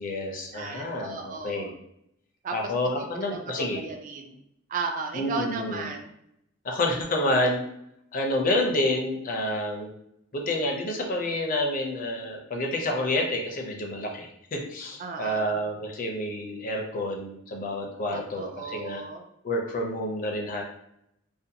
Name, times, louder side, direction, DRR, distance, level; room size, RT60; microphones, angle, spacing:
voice 1, 0.0-1.7 2.5-3.8 5.1-5.9 6.6-7.6 8.1-9.9 10.3-19.0 19.4-20.6, left 1 dB, 45° left, 1 dB, 0.5 m, -29 dB
voice 2, 0.5-1.7 2.4-4.4 4.7-6.1 15.0-15.7 18.1-19.2, right 4 dB, 40° right, 4 dB, 0.3 m, -35 dB
2.5 x 2.2 x 2.7 m, 0.75 s
head